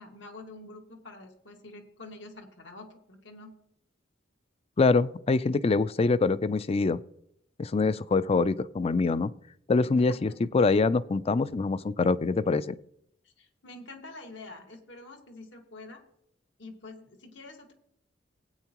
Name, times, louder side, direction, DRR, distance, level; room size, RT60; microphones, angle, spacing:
voice 1, 0.0-3.5 10.0-10.4 13.2-16.0 16.6-17.7, left 2 dB, 70° left, 3 dB, 1.8 m, -47 dB
voice 2, 4.8-7.0 7.6-9.3 9.7-12.7, left 3 dB, 35° left, 18 dB, 0.4 m, -24 dB
19.0 x 8.9 x 3.0 m, 0.74 s
head